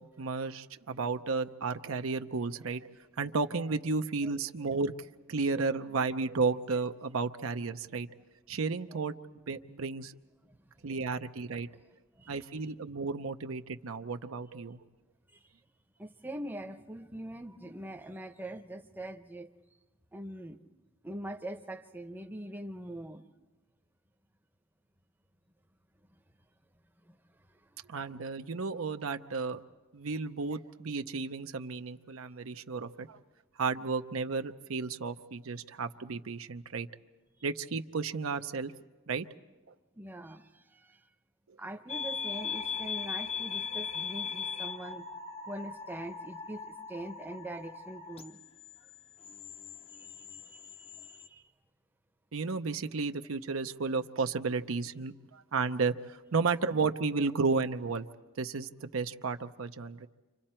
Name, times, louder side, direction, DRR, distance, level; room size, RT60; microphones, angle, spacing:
voice 1, 0.2-2.9 3.2-4.9 5.3-8.1 8.5-9.1 9.5-10.1 10.8-11.7 12.3-14.8 27.9-29.6 29.9-33.2 33.6-36.9 37.4-38.7 39.1-39.3 41.5-41.6 52.3-58.1 58.4-60.1, right 4 dB, 75° right, 7 dB, 0.7 m, -33 dB
voice 2, 12.2-12.7 15.3-15.5 16.0-19.5 20.1-20.6 21.0-23.3 27.0-27.2 27.5-27.6 27.9-28.0 35.5-35.6 40.0-41.0 41.6-45.1 45.5-48.4 49.9-51.5, right 1 dB, 10° right, 5 dB, 0.8 m, -43 dB
sound 1, 41.9-51.3, left 6 dB, 30° left, 0.7 m, -39 dB
30.0 x 26.5 x 4.4 m, 1.2 s
head